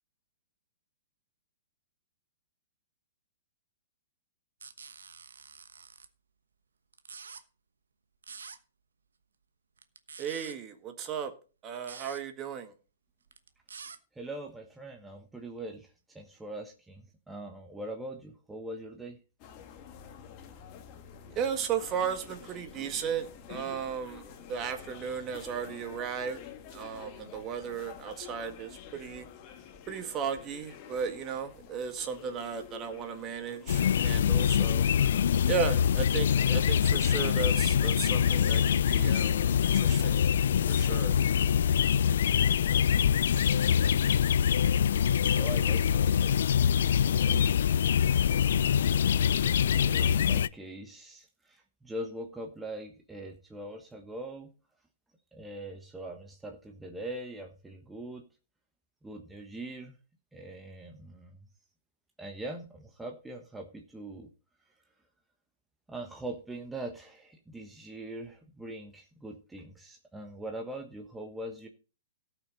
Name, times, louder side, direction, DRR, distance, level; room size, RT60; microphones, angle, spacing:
sound 1, 4.6-6.1 6.9-7.4 8.2-8.6 9.8-10.5 11.8-12.2 13.3-14.0, right 5 dB, 75° right, 1.1 m, -47 dB
voice 1, 10.2-11.3 11.6-12.7 21.4-26.4 26.7-29.3 29.9-34.9 35.5-40.2 40.7-41.1, right 7 dB, 30° right, 1.8 m, -35 dB
voice 2, 14.1-19.2 45.3-47.6 48.7-49.6 49.8-54.5 55.3-58.2 59.0-60.0 60.3-61.5 62.2-64.3 65.9-71.7, right 1 dB, 10° right, 1.3 m, -42 dB
sound 2, 19.4-38.7, left 8 dB, 35° left, 1.7 m, -49 dB
sound 3, 33.7-50.5, left 8 dB, 65° left, 0.4 m, -24 dB
17.5 x 6.0 x 4.1 m
figure-of-eight pair, 115°, 0 cm